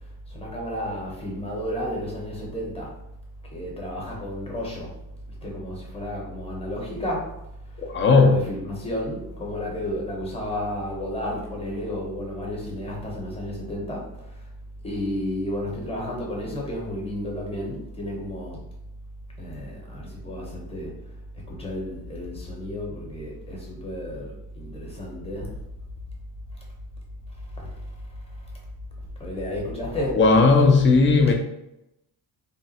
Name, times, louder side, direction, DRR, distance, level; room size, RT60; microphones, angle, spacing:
voice 1, 0.3-2.9 3.5-5.0 5.3-14.5 14.8-18.7 19.4-21.1 21.5-25.6 26.5-26.6 27.3-28.6 29.2-30.3 31.3-31.4, left 1 dB, 15° left, -2 dB, 0.9 m, -32 dB
voice 2, 7.8-8.4 30.2-31.3, left 4 dB, 30° left, 4 dB, 0.5 m, -16 dB
3.5 x 2.4 x 4.1 m, 0.87 s
cardioid pair, 170°, 40 cm